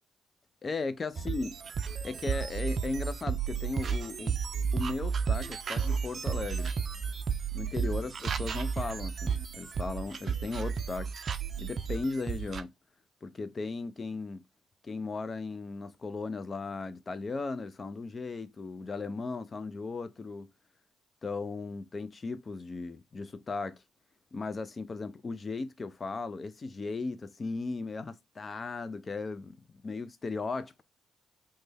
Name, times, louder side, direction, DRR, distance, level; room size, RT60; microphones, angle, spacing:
voice 1, 0.6-1.5 2.0-4.4 4.7-6.7 7.5-11.1 11.6-12.7 13.2-14.4 14.8-20.5 21.2-23.8 24.3-30.8, left 3 dB, 35° left, 0.4 m, -36 dB
sound 1, 1.2-12.6, right 6 dB, 50° right, 0.4 m, -33 dB
3.2 x 2.2 x 3.3 m
cardioid pair, 90°, 0 cm